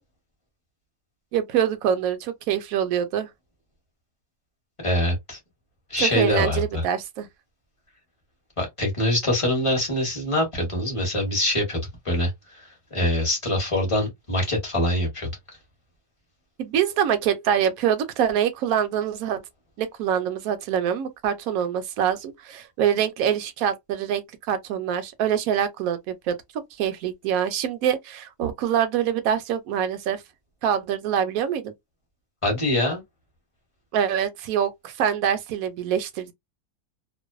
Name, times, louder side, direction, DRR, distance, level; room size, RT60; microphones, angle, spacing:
voice 1, 1.3-3.3 6.0-7.3 16.6-19.4 19.8-26.4 26.8-30.2 30.6-31.7 33.9-36.3, right 9 dB, 70° right, 1.0 m, -25 dB
voice 2, 4.8-5.4 5.9-6.8 8.6-15.3 32.4-33.0, left 1 dB, 25° left, 0.9 m, -24 dB
2.6 x 2.2 x 2.2 m
omnidirectional pair, 1.6 m